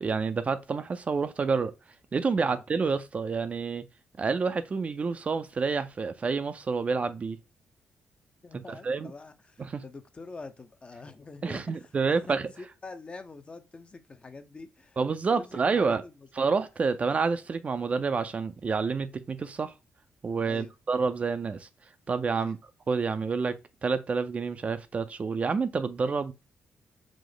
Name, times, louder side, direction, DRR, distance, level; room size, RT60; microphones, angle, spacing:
voice 1, 0.0-1.7 2.1-3.8 4.2-7.4 8.5-9.1 9.6-9.8 11.4-12.5 15.0-16.0 16.3-19.7 20.2-21.7 22.1-22.6 22.9-26.3, right 4 dB, 40° right, 0.4 m, -28 dB
voice 2, 8.4-15.0 15.3-16.3 20.4-20.7 22.3-22.6, left 3 dB, 30° left, 0.6 m, -46 dB
5.0 x 2.0 x 3.8 m
cardioid pair, 85°, 4 cm